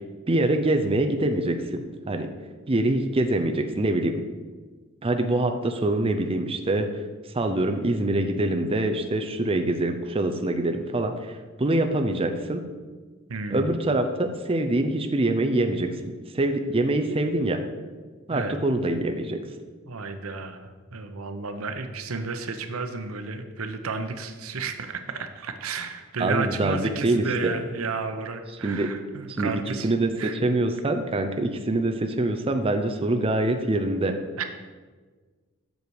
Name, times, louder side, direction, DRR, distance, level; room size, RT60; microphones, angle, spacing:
voice 1, 0.3-1.8 2.1-2.3 2.7-4.2 5.0-6.9 7.3-12.6 13.5-17.6 18.3-19.4 26.2-27.5 28.6-28.9 29.4-34.1, right 2 dB, 25° right, 5 dB, 0.6 m, -25 dB
voice 2, 13.3-13.7 18.3-18.6 18.8-18.9 19.9-29.9 30.2-30.4 34.4-34.5, right 4 dB, 85° right, 8 dB, 0.8 m, -32 dB
7.9 x 6.8 x 4.7 m, 1.4 s
head